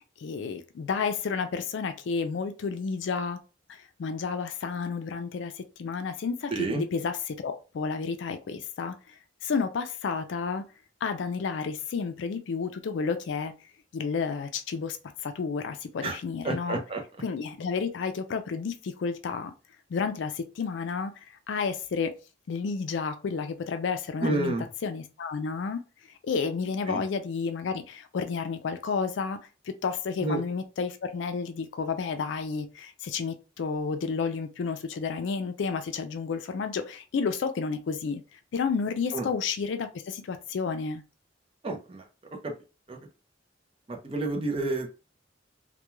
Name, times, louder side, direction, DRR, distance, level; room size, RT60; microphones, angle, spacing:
voice 1, 0.2-3.4 3.7-8.9 9.4-10.6 11.0-13.5 13.9-15.0 15.2-16.8 17.2-19.5 19.9-22.1 22.5-24.6 24.8-25.8 26.2-29.4 29.8-38.2 38.5-41.0, left 5 dB, 65° left, 0.3 m, -31 dB
voice 2, 6.5-6.8 16.0-16.2 16.4-17.0 24.2-24.7 26.9-27.0 30.2-30.4 39.1-39.3 41.6-42.1 42.4-42.5 42.9-43.0 43.9-44.9, right 2 dB, 30° right, 0.4 m, -29 dB
2.3 x 2.2 x 3.0 m
head